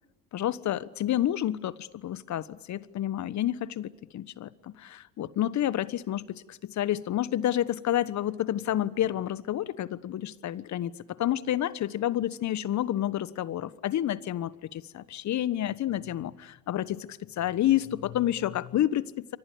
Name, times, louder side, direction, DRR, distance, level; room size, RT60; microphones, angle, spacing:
voice 1, 0.3-10.9 11.2-19.4, left 12 dB, 45° left, 17 dB, 1.3 m, -29 dB
29.5 x 24.0 x 7.1 m, 1.1 s
hypercardioid pair, 75°, 38 cm